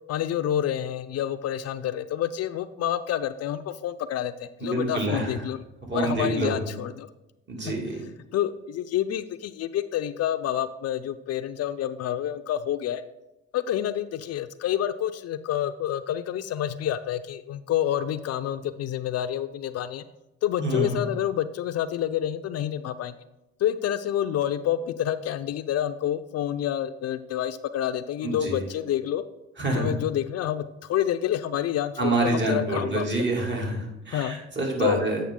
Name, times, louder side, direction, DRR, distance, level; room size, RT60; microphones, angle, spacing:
voice 1, 0.1-5.6 5.9-7.1 7.6-7.7 8.3-13.0 13.5-20.0 20.4-23.1 23.6-29.2 29.7-33.1 34.1-34.4 34.8-35.0, left 11 dB, 55° left, 11 dB, 0.4 m, -28 dB
voice 2, 4.6-5.4 5.9-6.7 7.5-8.0 20.6-21.0 28.2-28.6 29.6-29.9 32.0-35.2, right 2 dB, 40° right, -1 dB, 2.5 m, -27 dB
8.3 x 5.6 x 3.7 m, 0.93 s
supercardioid pair, 60°, 30 cm